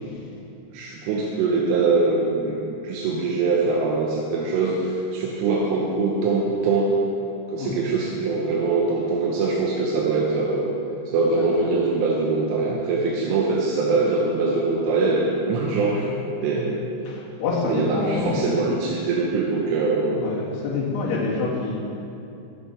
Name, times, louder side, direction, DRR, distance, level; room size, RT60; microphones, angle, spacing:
voice 1, 0.7-6.9 7.5-10.7 11.1-16.1 16.4-16.8 17.7-20.3, right 3 dB, 85° right, -3 dB, 3.5 m, -23 dB
voice 2, 17.1-18.5 20.2-21.8, left 4 dB, 60° left, -5 dB, 3.5 m, -27 dB
21.5 x 7.7 x 3.4 m, 2.7 s
omnidirectional pair, 5.7 m